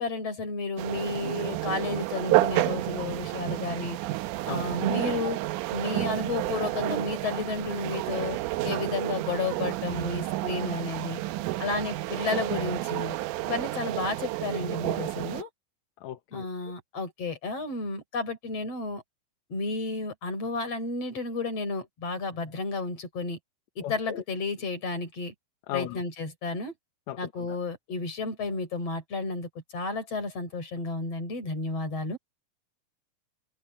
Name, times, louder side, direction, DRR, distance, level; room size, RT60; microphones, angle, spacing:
voice 1, 0.0-4.0 4.5-5.4 5.7-8.4 8.6-11.2 11.6-13.2 13.4-15.5 16.3-19.0 19.5-23.4 23.8-25.3 25.7-26.7 27.2-32.2, left 3 dB, 50° left, 5.7 m, -32 dB
sound 1, 0.8-15.4, right 17 dB, 80° right, 2.2 m, -30 dB
voice 2, 16.0-16.5 23.8-24.2 25.7-26.0 27.1-27.6, left 12 dB, 70° left, 2.0 m, -37 dB
omnidirectional pair, 3.8 m